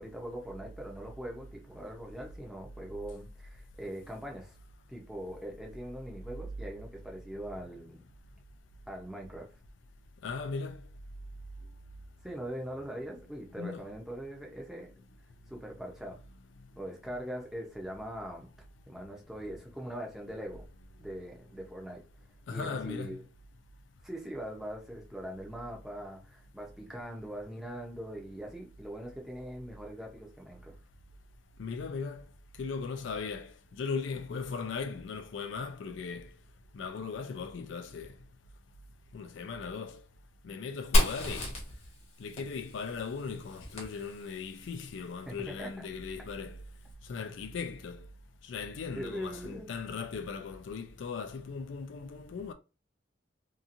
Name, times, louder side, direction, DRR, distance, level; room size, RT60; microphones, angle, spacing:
voice 1, 0.0-4.6 4.9-8.1 8.9-9.5 12.2-14.9 15.5-16.2 16.8-18.5 18.9-20.7 21.0-22.0 22.5-23.2 24.0-30.8 45.3-45.9 48.9-49.7, right 1 dB, ahead, 0.6 m, -41 dB
voice 2, 10.2-10.8 13.6-13.9 22.5-23.2 31.6-32.2 32.6-36.3 36.7-38.1 39.1-40.0 40.4-41.5 42.2-46.6 47.1-48.1 48.5-52.5, left 5 dB, 70° left, 0.4 m, -38 dB
Fire, 40.9-44.6, equal, 35° left, 0.8 m, -31 dB
2.8 x 2.4 x 2.5 m
head